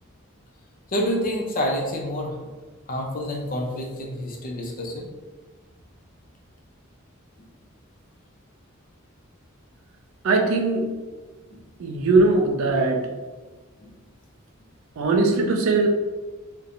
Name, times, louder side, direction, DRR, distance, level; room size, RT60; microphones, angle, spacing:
voice 1, 0.9-2.4 2.9-5.1 11.5-11.7 13.8-14.0, equal, 40° left, 1 dB, 0.4 m, -28 dB
voice 2, 10.2-10.9 11.8-13.0 15.0-15.9, right 3 dB, 70° right, 2 dB, 0.4 m, -20 dB
2.5 x 2.1 x 2.8 m, 1.3 s
head